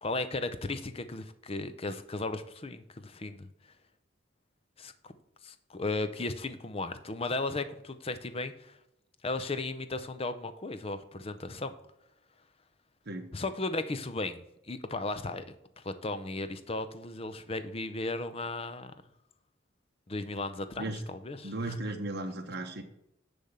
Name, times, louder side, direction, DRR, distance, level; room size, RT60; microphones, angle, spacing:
voice 1, 0.0-3.5 4.8-5.1 5.4-8.8 9.2-11.7 13.3-15.5 15.8-18.9 20.1-21.9, left 2 dB, 30° left, 10 dB, 0.6 m, -35 dB
voice 2, 21.4-22.8, right 2 dB, 55° right, 4 dB, 1.1 m, -36 dB
10.0 x 3.5 x 5.6 m, 0.80 s
head